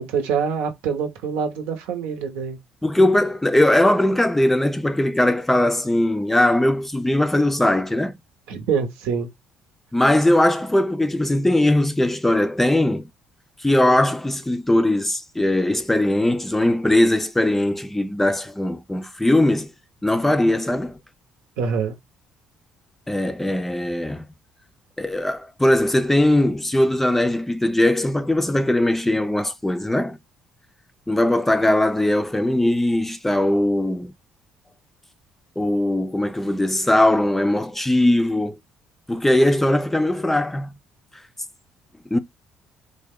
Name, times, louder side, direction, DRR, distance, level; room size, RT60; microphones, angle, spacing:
voice 1, 0.0-2.6 8.5-9.3 21.6-21.9, right 6 dB, 85° right, 0.9 m, -25 dB
voice 2, 2.8-8.1 9.9-13.0 13.6-19.7 20.0-21.0 23.1-24.3 25.0-30.2 31.1-34.1 35.6-38.6 39.1-40.7 42.1-42.2, left 1 dB, 10° left, 0.4 m, -20 dB
3.6 x 2.2 x 3.5 m
supercardioid pair, 80°, 3 cm